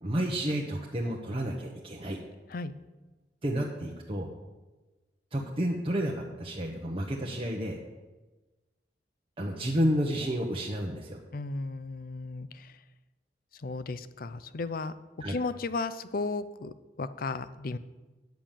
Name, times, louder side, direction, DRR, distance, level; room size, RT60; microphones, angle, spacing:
voice 1, 0.0-2.2 3.4-4.3 5.3-7.8 9.4-11.2 15.2-15.4, equal, 30° right, -1 dB, 0.9 m, -31 dB
voice 2, 11.3-12.7 13.6-14.9 15.3-17.8, left 3 dB, 55° left, 14 dB, 0.5 m, -34 dB
9.3 x 6.8 x 7.4 m, 1.2 s
head